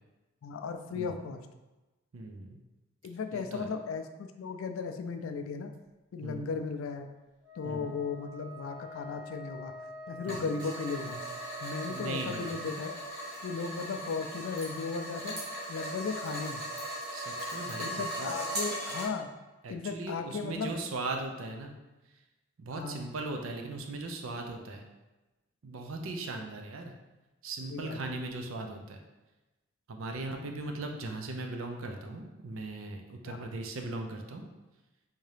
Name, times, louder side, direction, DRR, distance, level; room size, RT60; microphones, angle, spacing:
voice 1, 0.4-1.5 3.0-5.7 6.1-7.1 7.6-9.7 10.1-11.3 11.6-13.0 13.4-16.7 17.8-19.3 19.7-20.7 22.7-23.0 27.7-28.1 33.3-33.5, left 5 dB, 75° left, 7 dB, 0.3 m, -36 dB
voice 2, 2.1-2.6 3.3-3.7 6.2-6.5 7.6-7.9 10.2-10.4 11.9-12.5 17.1-18.3 19.6-21.7 22.6-24.8 25.6-26.9 27.4-29.0 29.9-34.4, right 2 dB, 80° right, 3 dB, 0.5 m, -38 dB
Wind instrument woodwind instrument, 7.4-12.7, right 1 dB, 10° right, 0.9 m, -46 dB
sound 1, 10.2-19.1, right 1 dB, 50° right, 1.2 m, -38 dB
3.6 x 2.7 x 3.3 m, 1.1 s
head